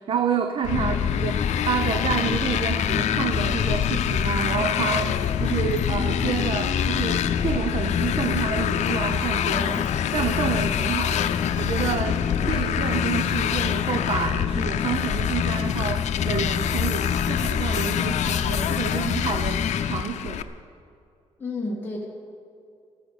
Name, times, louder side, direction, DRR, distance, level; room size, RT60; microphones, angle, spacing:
voice 1, 0.0-9.8 10.1-11.3 11.6-12.2 12.5-20.4, right 7 dB, 50° right, 8 dB, 0.7 m, -29 dB
Motorcycle, 0.6-20.4, left 9 dB, 90° left, 0.7 m, -27 dB
sound 1, 0.7-20.0, left 7 dB, 40° left, 0.3 m, -28 dB
voice 2, 0.8-1.3 21.4-22.1, left 2 dB, 20° left, -4 dB, 2.1 m, -32 dB
14.0 x 13.0 x 6.6 m, 2.5 s
wide cardioid pair, 160°, 12 cm